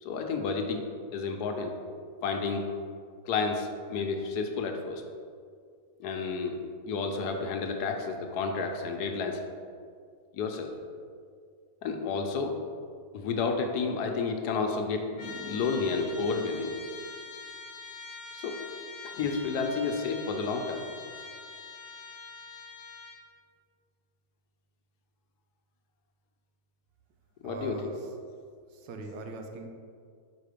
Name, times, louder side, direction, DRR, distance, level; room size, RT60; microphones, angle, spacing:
voice 1, 0.0-0.9 1.1-1.7 2.2-2.7 3.3-5.0 6.0-6.6 6.9-9.4 10.3-10.7 11.8-12.6 13.1-16.8 18.3-18.6 19.0-20.8 27.4-27.9, left 4 dB, 70° left, 3 dB, 1.1 m, -31 dB
Trumpet, 15.2-23.2, left 4 dB, 45° left, 1.1 m, -44 dB
voice 2, 27.4-28.1 28.7-29.7, right 3 dB, 85° right, 4 dB, 1.4 m, -40 dB
5.1 x 4.4 x 4.9 m, 2.2 s
omnidirectional pair, 1.9 m